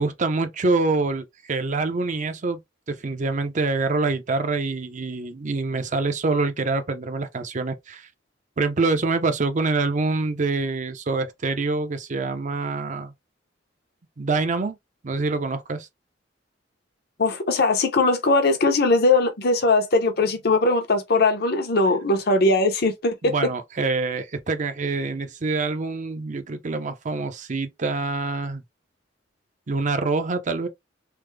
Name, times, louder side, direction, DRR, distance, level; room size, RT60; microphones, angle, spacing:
voice 1, 0.0-2.6 2.9-8.1 8.6-13.1 14.2-14.8 15.0-15.9 23.2-28.6 29.7-30.7, right 3 dB, 40° right, 0.6 m, -25 dB
voice 2, 17.2-23.1, left 3 dB, 55° left, 0.8 m, -20 dB
3.4 x 2.0 x 3.2 m
head